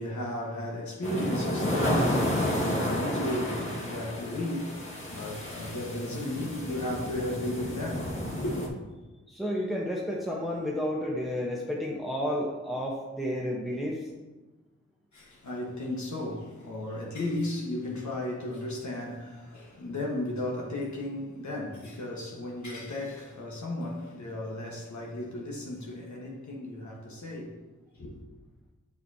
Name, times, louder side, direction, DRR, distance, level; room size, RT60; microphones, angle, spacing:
voice 1, 0.0-8.6 15.1-27.6 27.9-28.2, left 1 dB, 75° left, 1.4 m, -35 dB
sound 1, 1.0-8.7, equal, 45° left, 1.8 m, -31 dB
voice 2, 9.3-14.1, equal, ahead, 1.0 m, -31 dB
7.5 x 6.9 x 2.8 m
wide cardioid pair, 55°, 29 cm